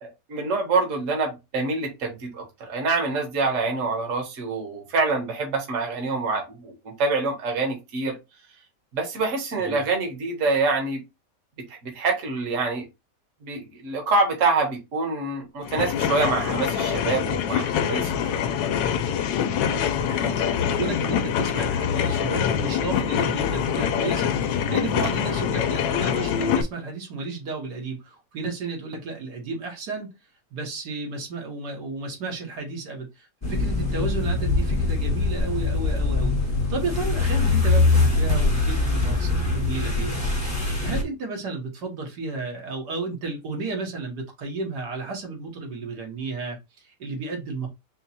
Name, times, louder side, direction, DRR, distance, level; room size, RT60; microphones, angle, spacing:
voice 1, 0.0-8.2 8.9-11.0 11.8-12.8 13.4-18.1, right 3 dB, 50° right, 1.4 m, -26 dB
voice 2, 9.5-9.8 19.6-30.2 30.5-36.3 36.7-40.2 40.8-47.7, right 3 dB, 70° right, 1.7 m, -33 dB
sound 1, 15.6-26.6, left 8 dB, 90° left, 1.3 m, -25 dB
sound 2, 33.4-41.0, left 3 dB, 10° left, 0.9 m, -23 dB
4.4 x 2.2 x 4.0 m
omnidirectional pair, 1.9 m